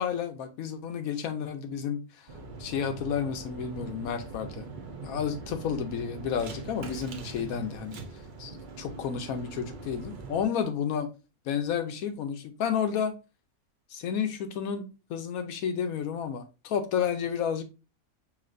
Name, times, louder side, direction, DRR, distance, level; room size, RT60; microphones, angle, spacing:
voice 1, 0.0-2.0 2.6-4.7 5.0-8.0 8.4-11.1 11.5-13.1 13.9-17.6, left 7 dB, 75° left, 1.0 m, -31 dB
sound 1, 2.3-10.4, right 4 dB, 50° right, 0.6 m, -42 dB
5.0 x 2.9 x 2.5 m
omnidirectional pair, 1.5 m